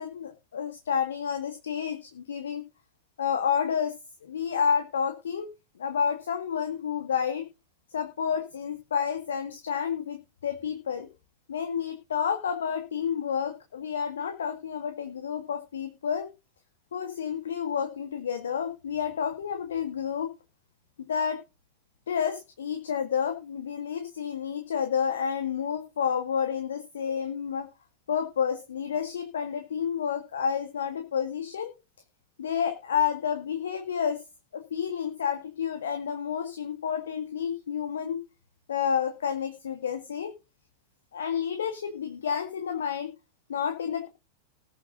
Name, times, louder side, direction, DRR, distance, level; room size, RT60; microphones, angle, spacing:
voice 1, 0.0-2.6 3.2-3.9 4.2-5.5 5.8-7.4 7.9-11.1 11.5-16.3 16.9-20.3 21.1-21.4 22.1-27.7 28.1-31.7 32.4-34.2 34.5-38.2 38.7-40.3 41.1-43.1 43.5-44.1, left 7 dB, 65° left, 7 dB, 1.9 m, -30 dB
20.0 x 7.7 x 2.7 m, 0.29 s
figure-of-eight pair, 90°, 0 cm